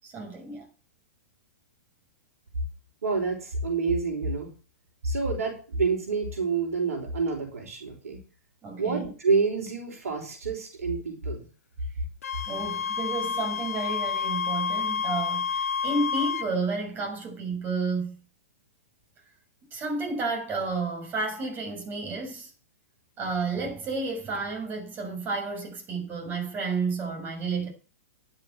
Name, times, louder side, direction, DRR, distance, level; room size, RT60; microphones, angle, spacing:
voice 1, 0.0-0.6 8.6-9.1 12.5-18.2 19.7-22.5 23.2-27.7, right 3 dB, 25° right, 6.8 m, -31 dB
voice 2, 3.0-4.5 5.0-8.2 8.8-11.5, right 4 dB, 75° right, 5.4 m, -28 dB
Wind instrument woodwind instrument, 12.2-16.5, left 6 dB, 80° left, 0.8 m, -29 dB
11.5 x 8.0 x 7.7 m
hypercardioid pair, 120°, 8 cm